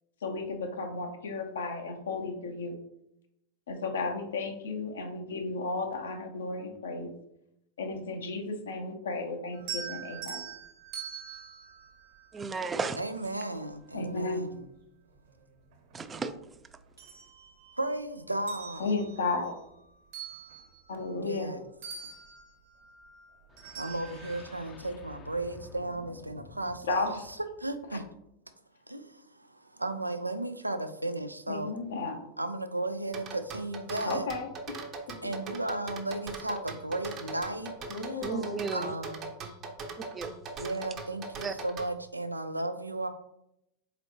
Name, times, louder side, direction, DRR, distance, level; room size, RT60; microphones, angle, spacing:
voice 1, 0.2-2.7 3.7-7.1 7.8-10.4 13.9-14.5 18.8-19.5 20.9-21.5 26.8-27.2 27.9-28.0 31.5-32.2 34.1-34.5 37.9-38.6, left 3 dB, 65° left, 4 dB, 0.8 m, -33 dB
sound 1, 9.5-12.9 14.5-14.6 15.1-16.4 16.7-18.0 18.3-21.5 21.8-24.5, right 7 dB, 55° right, 1.2 m, -44 dB
voice 2, 12.3-13.0 15.9-16.3 38.2-39.0 40.1-40.7 41.4-41.6, right 4 dB, 20° right, 10 dB, 0.4 m, -34 dB
voice 3, 13.0-14.6 17.8-18.8 21.1-21.6 23.8-27.2 27.6-28.0 28.9-31.7 32.4-34.3 35.2-37.7 38.0-38.3 38.7-39.2 40.6-43.1, right 2 dB, 85° right, 10 dB, 0.4 m, -35 dB
sound 2, 23.5-28.3, left 4 dB, 25° left, 0.6 m, -51 dB
sound 3, 33.1-41.9, right 3 dB, 35° right, 0.8 m, -40 dB
4.1 x 3.9 x 3.1 m, 0.80 s
figure-of-eight pair, 90°, 0 cm